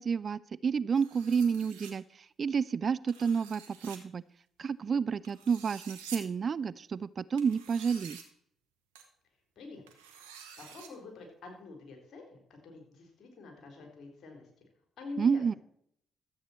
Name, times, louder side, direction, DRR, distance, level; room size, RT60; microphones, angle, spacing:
voice 1, 0.0-4.2 4.6-8.2 15.2-15.5, right 6 dB, 50° right, 19 dB, 0.4 m, -30 dB
sound 1, 1.0-1.9 3.1-4.0 5.2-6.2 7.4-8.2 9.0-9.1 9.9-10.9, right 8 dB, 90° right, 1.2 m, -48 dB
voice 2, 10.6-14.5 15.0-15.4, left 3 dB, 60° left, 3 dB, 3.8 m, -46 dB
13.0 x 8.2 x 4.4 m, 0.69 s
hypercardioid pair, 50°, 0 cm